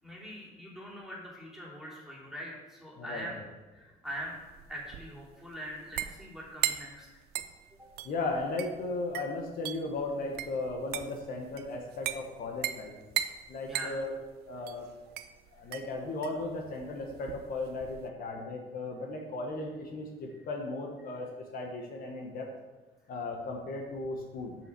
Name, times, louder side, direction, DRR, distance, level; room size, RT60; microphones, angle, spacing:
voice 1, 0.0-3.4 3.7-4.4 4.7-7.1 13.6-13.9, equal, ahead, -4 dB, 3.0 m, -42 dB
voice 2, 3.0-3.5 8.0-12.9 13.5-14.2 14.5-14.9 15.5-21.3 21.5-22.5 23.1-24.6, left 2 dB, 60° left, 2 dB, 1.3 m, -36 dB
sound 1, 4.1-18.1, right 12 dB, 70° right, 0.6 m, -39 dB
7.1 x 6.0 x 6.1 m, 1.2 s
cardioid pair, 110°, 17 cm